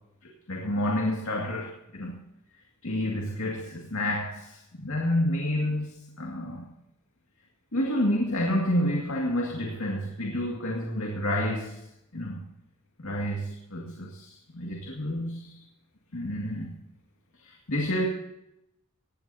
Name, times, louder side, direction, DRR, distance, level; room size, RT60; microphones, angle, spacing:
voice 1, 0.2-2.2 2.8-6.7 7.7-11.8 12.1-12.4 13.0-15.6 16.1-16.7 17.4-18.1, left 1 dB, 85° left, -1 dB, 2.1 m, -29 dB
19.5 x 15.5 x 2.8 m, 0.85 s
head